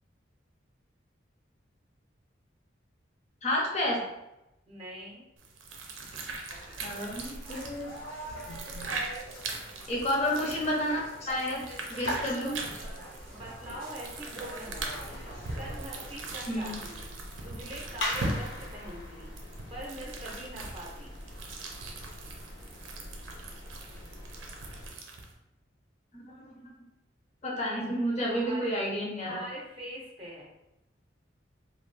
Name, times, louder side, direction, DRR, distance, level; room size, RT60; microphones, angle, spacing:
voice 1, 3.4-4.0 6.8-7.9 8.5-8.9 9.9-11.6 11.9-12.5 16.5-16.8 26.1-26.2 27.4-29.4, equal, 35° left, -3 dB, 0.6 m, -30 dB
voice 2, 4.7-5.2 13.3-15.0 15.5-17.0 17.4-19.3 19.7-21.1 28.2-28.7 29.2-30.5, right 1 dB, 30° right, -4 dB, 0.7 m, -42 dB
sound 1, 5.4-25.3, right 3 dB, 85° right, 0.5 m, -41 dB
sound 2, 6.5-16.1, right 1 dB, 85° left, 1.2 m, -43 dB
sound 3, 14.6-24.9, left 1 dB, 60° left, 0.9 m, -42 dB
2.6 x 2.4 x 3.2 m, 0.92 s
head